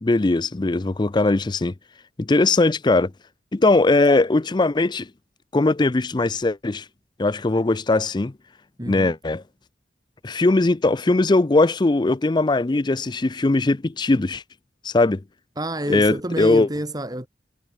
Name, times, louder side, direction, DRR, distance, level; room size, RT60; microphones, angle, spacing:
voice 1, 0.0-1.7 2.2-3.1 3.5-5.1 5.5-6.8 7.2-8.3 8.9-9.4 10.2-14.4 14.8-15.2 15.9-16.7, left 2 dB, 25° left, 0.5 m, -20 dB
voice 2, 8.8-9.1 15.6-17.3, right 1 dB, 20° right, 4.1 m, -28 dB
head